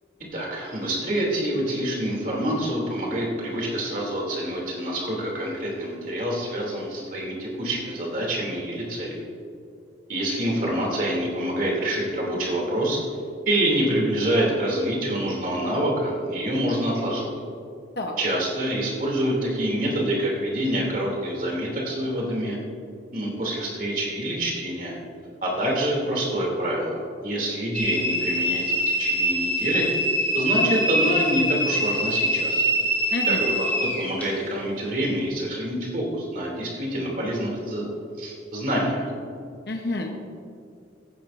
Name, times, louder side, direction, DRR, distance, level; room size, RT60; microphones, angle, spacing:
voice 1, 0.3-9.2 10.1-13.0 13.5-17.3 18.2-22.6 23.1-25.0 25.4-29.9 30.3-32.6 33.3-37.9 38.2-39.1, right 1 dB, 45° right, -3 dB, 2.7 m, -26 dB
sound 1, 27.7-34.3, equal, 10° left, 2.7 m, -24 dB
voice 2, 33.1-33.4 39.7-40.2, left 2 dB, 60° left, 2 dB, 0.9 m, -29 dB
16.5 x 10.0 x 2.5 m, 2.4 s
head